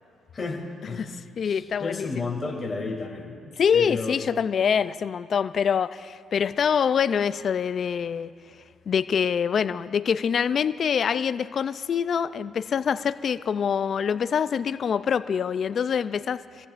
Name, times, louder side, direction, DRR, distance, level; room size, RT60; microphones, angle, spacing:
voice 1, 0.3-1.1 1.4-3.4 3.7-4.2, left 3 dB, 30° left, -2 dB, 3.2 m, -32 dB
voice 2, 1.4-2.2 3.6-8.3 8.9-16.7, left 7 dB, 55° left, 13 dB, 0.4 m, -25 dB
25.5 x 15.0 x 2.5 m, 2.3 s
cardioid pair, 90°, 0 cm